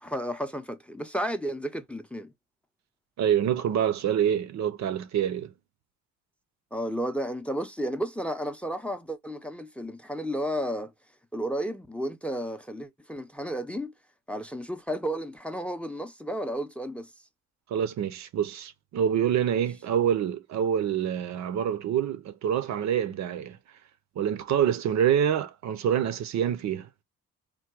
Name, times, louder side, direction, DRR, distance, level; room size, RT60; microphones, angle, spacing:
voice 1, 0.0-2.3 6.7-10.9 11.3-13.9 14.3-17.1, equal, 5° left, 0.5 m, -32 dB
voice 2, 3.2-5.5 17.7-23.6 24.2-26.9, right 9 dB, 65° right, 0.6 m, -26 dB
3.6 x 2.2 x 4.5 m
cardioid pair, 90°, 30 cm